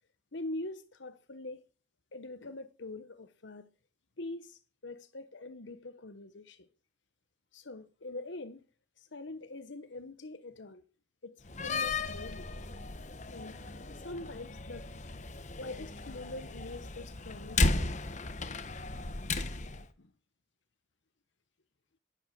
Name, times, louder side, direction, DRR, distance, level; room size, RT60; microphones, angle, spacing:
voice 1, 0.3-1.6 2.1-3.7 4.2-6.7 7.5-8.6 9.0-10.8 11.2-12.5 13.3-13.6 14.0-14.9 15.6-17.9 20.0-20.1, left 2 dB, 70° left, 1.1 m, -43 dB
Slam, 11.4-19.9, left 3 dB, 40° left, 1.2 m, -35 dB
11.5 x 11.0 x 7.7 m
head